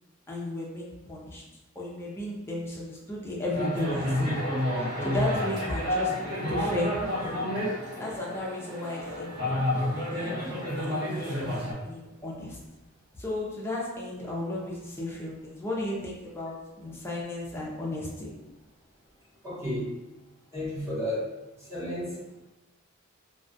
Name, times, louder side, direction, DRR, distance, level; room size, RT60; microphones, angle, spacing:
voice 1, 0.3-1.4 1.7-4.4 5.0-7.5 8.0-9.5 9.8-10.3 10.9-12.6 13.2-18.3, left 1 dB, 10° left, -5 dB, 0.5 m, -34 dB
sound 1, 3.5-11.7, left 1 dB, 50° right, 1.1 m, -30 dB
voice 2, 19.4-19.9 20.5-21.3 21.7-22.2, left 1 dB, 15° right, -9 dB, 1.0 m, -32 dB
2.3 x 2.3 x 2.5 m, 0.99 s
head